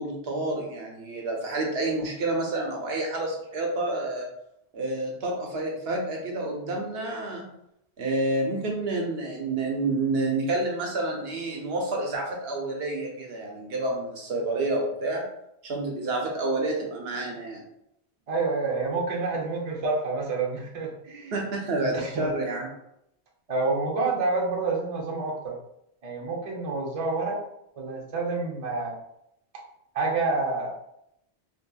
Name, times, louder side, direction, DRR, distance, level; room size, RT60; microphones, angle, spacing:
voice 1, 0.0-4.3 4.7-7.4 8.0-15.2 15.6-17.6 21.3-22.7, right 2 dB, 70° right, 0 dB, 0.8 m, -29 dB
voice 2, 18.3-21.3 21.9-22.3 23.5-25.6 26.0-27.4 27.8-29.0 29.9-30.7, right 3 dB, 40° right, -2 dB, 0.6 m, -28 dB
2.7 x 2.7 x 2.2 m, 0.77 s
omnidirectional pair, 1.2 m